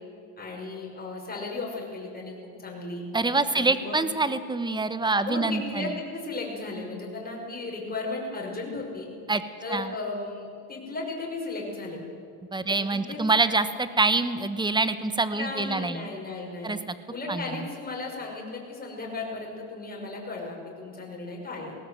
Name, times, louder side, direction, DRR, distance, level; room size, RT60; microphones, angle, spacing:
voice 1, 0.4-3.0 3.5-4.0 5.3-9.1 9.6-12.0 12.7-13.2 15.3-16.7 17.1-21.8, left 3 dB, 20° left, -1 dB, 5.9 m, -35 dB
voice 2, 3.1-5.9 9.3-9.4 9.7-9.9 12.5-16.1 16.6-16.9 17.3-17.7, right 3 dB, 10° right, 12 dB, 1.1 m, -26 dB
19.5 x 18.0 x 7.9 m, 2.5 s
cardioid pair, 115°, 43 cm